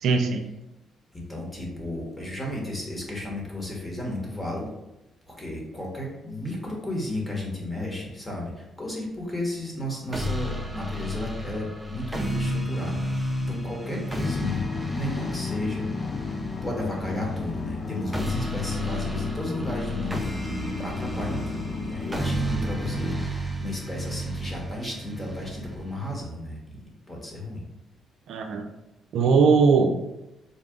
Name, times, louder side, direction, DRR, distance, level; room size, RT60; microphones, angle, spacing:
voice 1, 0.0-0.4 28.3-28.7 29.1-30.0, right 5 dB, 75° right, 5 dB, 0.4 m, -20 dB
voice 2, 1.3-4.7 5.3-16.2 16.6-20.3 20.8-27.6, left 1 dB, 20° left, -2 dB, 1.2 m, -34 dB
sound 1, 10.1-26.1, equal, 10° right, 0.6 m, -32 dB
sound 2, 14.2-23.3, left 4 dB, 45° left, 0.4 m, -33 dB
4.0 x 2.2 x 3.7 m, 0.93 s
cardioid pair, 90°, 0 cm